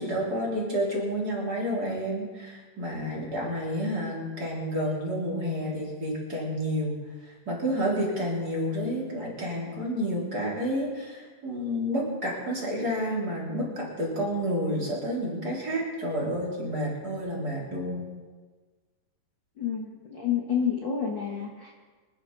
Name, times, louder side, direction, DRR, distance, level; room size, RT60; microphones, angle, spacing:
voice 1, 0.0-6.9 7.4-18.1, equal, 25° right, -4 dB, 3.4 m, -30 dB
voice 2, 19.6-21.7, left 7 dB, 55° left, 0 dB, 1.3 m, -29 dB
25.0 x 11.0 x 4.0 m, 1.4 s
omnidirectional pair, 4.2 m